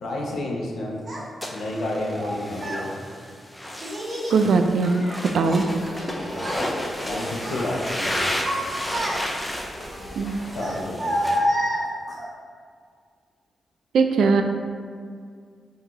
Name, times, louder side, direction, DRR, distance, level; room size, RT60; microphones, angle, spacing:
voice 1, 0.0-1.0 1.5-2.9 6.1-6.5 7.0-8.2 10.4-11.2, left 1 dB, 80° left, -2 dB, 0.8 m, -30 dB
Child speech kid speaking, 1.1-1.2 2.1-2.9 3.8-4.4 4.8-6.1 6.3-6.7 7.1-7.7 8.2-9.5 10.5-12.3, equal, 35° right, 0.9 m, -28 dB
sound 1, 1.4-11.4, left 1 dB, 15° left, 0.5 m, -33 dB
voice 2, 4.3-4.9 5.3-5.7 10.2-10.4 13.9-14.4, right 4 dB, 80° right, 5 dB, 0.3 m, -19 dB
sound 2, 5.5-10.9, left 1 dB, 55° left, 1.0 m, -40 dB
4.7 x 2.7 x 3.7 m, 2.1 s
cardioid pair, 95°, 0 cm